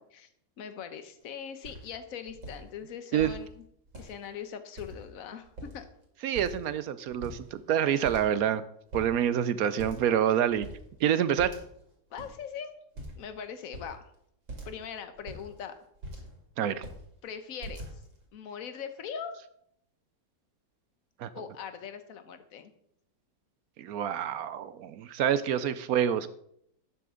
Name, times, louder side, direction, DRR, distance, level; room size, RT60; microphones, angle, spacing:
voice 1, 0.6-3.6 3.9-5.5 5.7-5.9 12.1-12.7 13.2-14.0 14.6-15.8 17.2-17.8 18.3-19.4 21.3-22.7, left 7 dB, 55° left, 10 dB, 1.3 m, -41 dB
sound 1, 1.2-1.3 1.6-1.9 2.3-2.6 3.2-3.4 3.9-4.3 4.8-5.2 5.4-6.0 6.4-6.8 7.1-7.7 8.0-8.6 8.9-9.1 9.8-10.2 10.5-10.8 11.4-11.9 12.2-12.3 13.0-13.3 13.7-13.9 14.5-14.8 15.2-16.4 16.7-17.0 17.6-18.2, right 1 dB, 90° right, 3.4 m, -43 dB
voice 2, 6.2-8.6 8.9-10.7 11.0-11.5 16.6-16.8 21.2-21.3 23.8-26.3, right 9 dB, 70° right, 14 dB, 0.9 m, -27 dB
12.0 x 8.5 x 3.7 m, 0.71 s
omnidirectional pair, 1.9 m